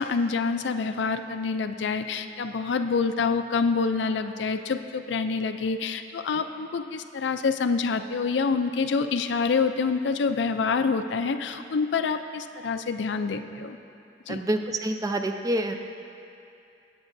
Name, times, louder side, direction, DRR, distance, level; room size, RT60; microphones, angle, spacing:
voice 1, 0.0-13.8 14.3-14.4, left 4 dB, 70° left, 8 dB, 0.4 m, -27 dB
voice 2, 14.3-15.8, right 1 dB, 20° right, 5 dB, 0.4 m, -27 dB
18.5 x 8.0 x 2.6 m, 2.6 s
head